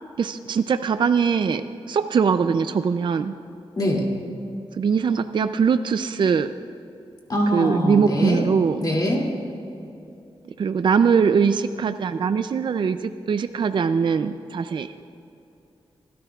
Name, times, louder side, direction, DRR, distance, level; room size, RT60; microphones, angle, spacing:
voice 1, 0.2-3.4 4.8-6.5 7.5-8.8 10.6-14.9, right 6 dB, 55° right, 10 dB, 0.4 m, -22 dB
voice 2, 7.3-8.4 8.8-9.2, equal, 45° left, -1 dB, 2.5 m, -22 dB
29.0 x 12.5 x 2.4 m, 2.8 s
wide cardioid pair, 125°, 10 cm